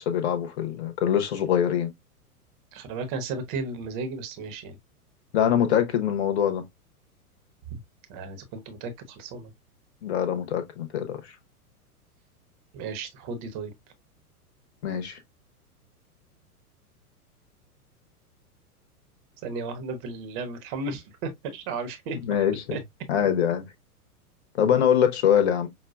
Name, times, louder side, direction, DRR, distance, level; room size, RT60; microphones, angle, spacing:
voice 1, 0.0-1.9 5.3-6.6 10.0-11.2 14.8-15.2 22.2-22.8 23.1-23.7 24.6-25.7, left 9 dB, 45° left, 1.0 m, -23 dB
voice 2, 2.7-4.8 7.7-7.8 8.1-9.5 12.7-13.7 19.4-22.2 22.7-22.8, right 4 dB, 35° right, 0.9 m, -34 dB
5.6 x 2.2 x 2.4 m
figure-of-eight pair, 100°, 45 cm